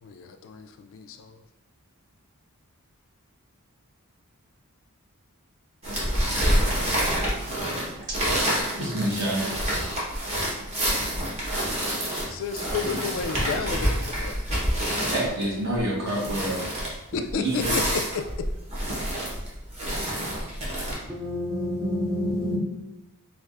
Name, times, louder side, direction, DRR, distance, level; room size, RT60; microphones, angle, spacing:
voice 1, 0.0-1.4 12.3-14.6 17.1-18.3, left 5 dB, 60° left, 0.3 m, -32 dB
sound 1, 5.8-20.9, equal, 30° right, 1.0 m, -27 dB
voice 2, 7.4-9.6 15.1-16.7 17.3-17.8, right 1 dB, 55° right, 1.1 m, -29 dB
voice 3, 21.1-22.6, left 1 dB, 10° right, 0.6 m, -28 dB
4.6 x 2.3 x 2.4 m
head